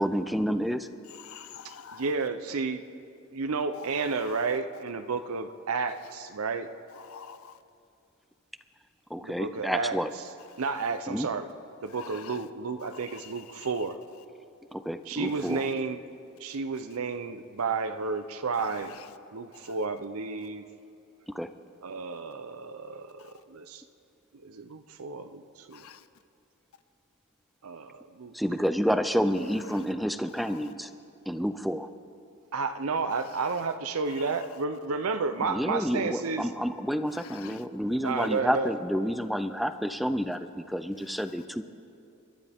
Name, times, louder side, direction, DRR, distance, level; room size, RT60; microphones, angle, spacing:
voice 1, 0.0-0.9 9.1-10.1 11.1-11.3 14.7-15.7 21.3-21.5 28.3-30.9 31.3-31.9 35.5-41.6, equal, ahead, 0.4 m, -29 dB
voice 2, 1.1-2.1 3.7-4.5 6.9-7.6 10.5-10.9 11.9-12.5 12.8-13.7 15.4-15.5 18.5-19.1 19.6-19.8 23.2-23.3 25.7-26.1 29.7-29.8 30.5-30.7 33.3-33.6 34.1-34.6 37.1-37.6 41.1-41.2, left 7 dB, 70° left, 0.7 m, -48 dB
voice 3, 1.9-2.8 3.3-6.7 9.2-10.0 10.6-11.5 11.8-14.0 15.1-16.0 16.4-18.9 19.3-20.6 21.8-23.2 23.5-23.8 24.4-25.8 27.6-28.3 32.5-36.5 38.0-38.7, right 4 dB, 80° right, 0.7 m, -31 dB
29.5 x 12.0 x 3.6 m
head